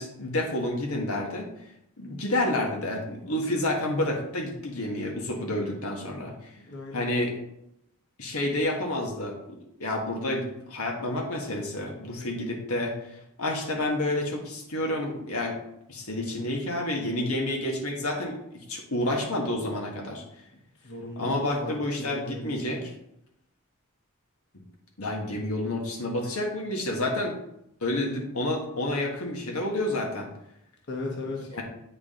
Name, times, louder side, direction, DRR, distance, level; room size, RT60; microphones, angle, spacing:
voice 1, 0.0-1.5 2.0-6.5 6.9-7.4 8.2-15.6 15.9-20.2 21.2-22.9 25.0-27.3 27.8-30.3 31.5-31.6, left 1 dB, 90° left, 1 dB, 1.6 m, -29 dB
voice 2, 6.5-7.1 20.8-22.8 30.9-31.5, left 2 dB, 55° left, 0 dB, 1.1 m, -37 dB
8.6 x 4.9 x 3.7 m, 0.79 s
head